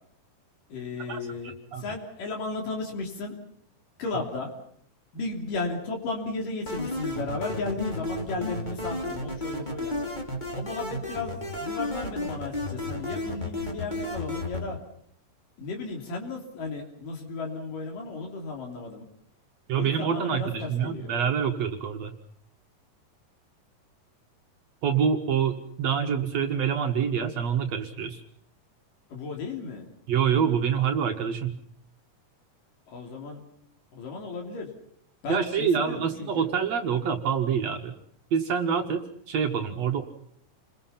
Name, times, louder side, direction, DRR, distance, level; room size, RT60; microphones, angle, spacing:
voice 1, 0.7-3.4 4.0-4.5 5.1-10.1 10.5-14.8 15.6-19.1 19.7-21.1 29.1-29.9 32.9-33.4 33.9-34.7 35.2-36.5, left 3 dB, 75° left, 1 dB, 4.8 m, -34 dB
sound 1, 6.7-14.6, left 1 dB, 15° left, 2.7 m, -33 dB
voice 2, 19.7-22.1 24.8-28.2 30.1-31.6 35.3-37.9 38.3-39.0 39.3-40.0, right 7 dB, 60° right, 4 dB, 2.4 m, -26 dB
29.5 x 21.5 x 5.8 m, 0.66 s
omnidirectional pair, 3.8 m